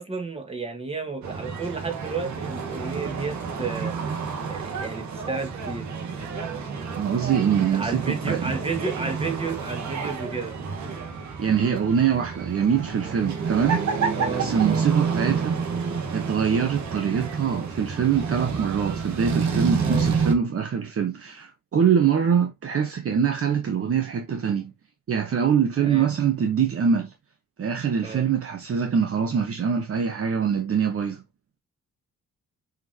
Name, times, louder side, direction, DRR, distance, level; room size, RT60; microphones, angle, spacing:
voice 1, 0.0-4.0 4.5-5.8 7.7-10.6 14.2-14.8 19.8-20.1 25.8-26.1 28.0-28.3, right 4 dB, 20° right, 2.4 m, -32 dB
sound 1, 1.2-20.3, right 5 dB, 65° right, 2.0 m, -29 dB
voice 2, 6.9-8.4 11.4-13.8 14.3-15.6 16.1-24.7 25.1-27.1 27.6-31.2, right 7 dB, 50° right, 1.2 m, -24 dB
7.2 x 5.3 x 2.9 m
cardioid pair, 130°, 30 cm